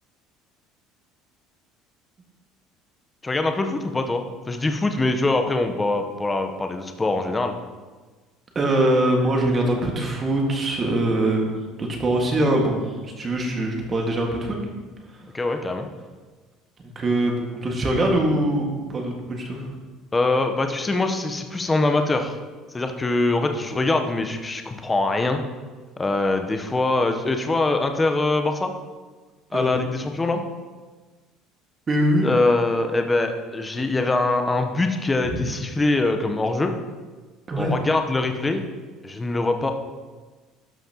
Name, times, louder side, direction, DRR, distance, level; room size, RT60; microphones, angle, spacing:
voice 1, 3.2-7.6 15.3-15.9 20.1-22.4 22.7-25.4 26.0-28.7 29.5-30.4 32.2-36.7 37.6-38.6 39.0-39.7, left 2 dB, 20° left, 6 dB, 0.8 m, -23 dB
voice 2, 8.5-11.5 11.8-14.6 16.8-19.7 29.5-29.7 31.9-32.3 37.5-37.7, right 1 dB, 30° right, 1 dB, 1.7 m, -23 dB
12.5 x 5.7 x 2.9 m, 1.3 s
supercardioid pair, 95°, 0 cm